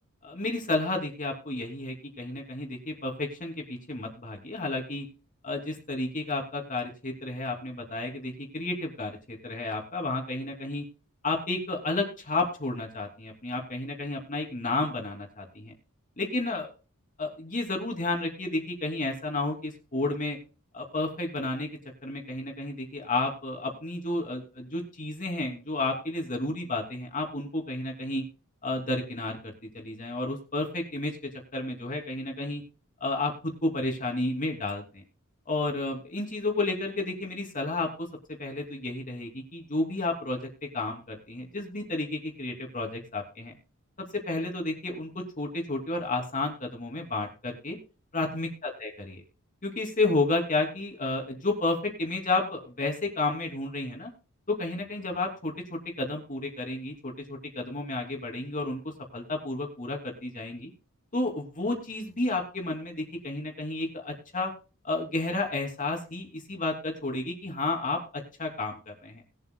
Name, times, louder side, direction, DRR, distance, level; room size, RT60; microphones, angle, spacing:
voice 1, 0.2-5.1 5.4-10.8 11.2-15.7 16.2-16.7 17.2-20.4 20.7-21.7 22.0-28.2 28.6-32.6 33.0-35.0 35.5-38.1 38.4-40.4 40.7-43.5 44.3-47.8 48.1-48.5 48.8-49.2 49.6-54.1 54.5-58.8 59.1-60.7 61.1-64.5 64.8-69.2, left 2 dB, 40° left, 2 dB, 2.8 m, -31 dB
20.5 x 7.9 x 2.3 m, 0.35 s
head